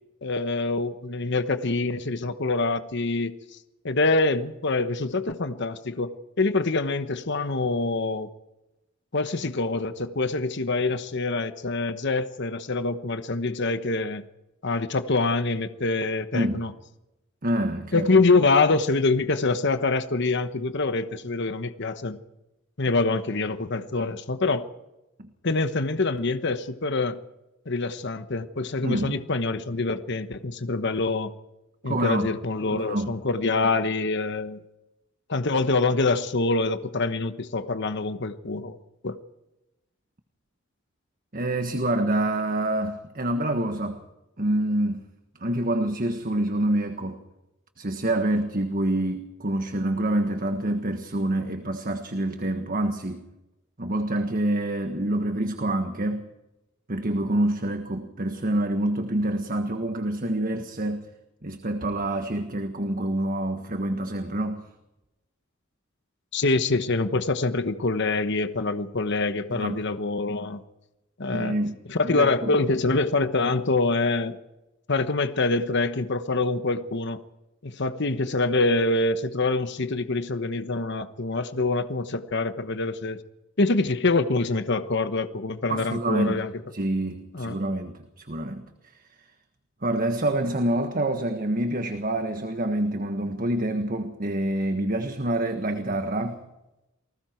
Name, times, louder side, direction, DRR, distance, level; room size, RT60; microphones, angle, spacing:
voice 1, 0.2-3.3 3.8-8.3 9.1-14.2 14.6-16.7 17.9-22.2 22.8-24.7 25.4-27.2 27.7-31.3 31.8-34.6 35.3-38.8 39.0-39.2 66.3-70.6 71.2-71.6 71.9-74.4 74.9-77.2 77.6-83.2 83.6-86.5 87.3-87.6, left 3 dB, 60° left, 10 dB, 1.1 m, -25 dB
voice 2, 16.3-16.6 17.4-18.1 25.2-25.3 28.8-29.2 31.8-32.3 32.7-33.1 41.3-44.0 44.4-45.0 45.4-47.2 47.8-53.2 53.8-56.3 56.9-61.1 61.4-64.7 69.5-69.8 71.3-71.7 72.0-72.5 85.7-86.4 86.7-88.7 89.8-96.4, right 1 dB, 45° right, 6 dB, 1.5 m, -27 dB
28.5 x 20.0 x 4.6 m, 0.97 s
head